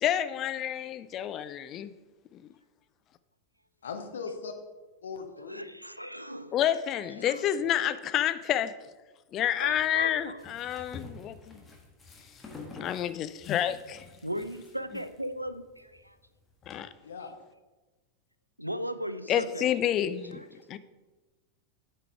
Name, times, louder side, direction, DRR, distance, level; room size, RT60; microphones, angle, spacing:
voice 1, 0.0-1.9 6.5-8.7 9.3-11.6 12.8-14.0 16.7-16.9 19.3-20.4 20.7-20.8, left 10 dB, 35° left, 13 dB, 0.3 m, -29 dB
voice 2, 3.8-4.5 5.0-5.6 7.1-7.3 17.0-17.3, left 5 dB, 65° left, 5 dB, 0.9 m, -39 dB
voice 3, 5.5-6.5 7.2-7.6 9.6-10.5 14.2-16.2 17.2-17.3 18.6-19.8 20.3-20.5, equal, 90° right, 12 dB, 0.4 m, -37 dB
sound 1, 9.7-16.8, left 3 dB, 15° left, 1.4 m, -49 dB
8.4 x 4.8 x 4.7 m, 1.2 s
figure-of-eight pair, 90°, 0 cm